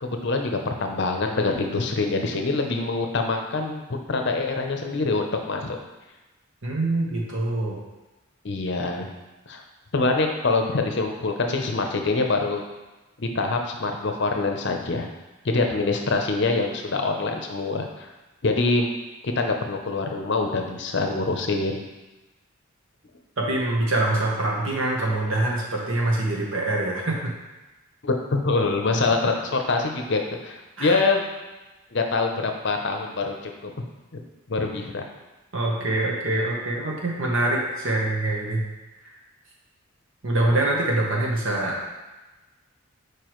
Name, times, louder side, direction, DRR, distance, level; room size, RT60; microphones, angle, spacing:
voice 1, 0.0-3.8 4.1-5.8 8.4-9.0 9.5-9.6 9.9-12.6 13.2-15.1 15.4-17.9 18.4-18.9 19.2-21.8 28.0-31.2 31.9-33.7 34.5-35.1, left 3 dB, 55° left, 3 dB, 0.7 m, -25 dB
voice 2, 6.6-7.8 23.4-27.3 28.9-29.0 30.8-31.0 35.5-38.6 40.2-41.9, right 2 dB, 60° right, -3 dB, 1.2 m, -24 dB
6.8 x 4.7 x 3.1 m, 1.1 s
head